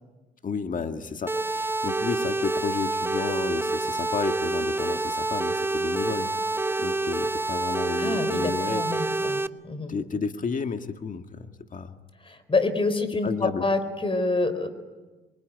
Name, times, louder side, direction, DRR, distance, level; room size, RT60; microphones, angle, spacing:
voice 1, 0.4-6.3 6.8-8.8 9.9-12.0 13.2-13.7, left 5 dB, 40° left, 7 dB, 1.7 m, -32 dB
sound 1, 1.3-9.5, right 2 dB, 10° right, 0.8 m, -27 dB
voice 2, 8.0-9.9 12.2-14.7, left 3 dB, 25° left, 12 dB, 4.2 m, -27 dB
27.0 x 23.0 x 9.6 m, 1.2 s
cardioid pair, 90°, 20 cm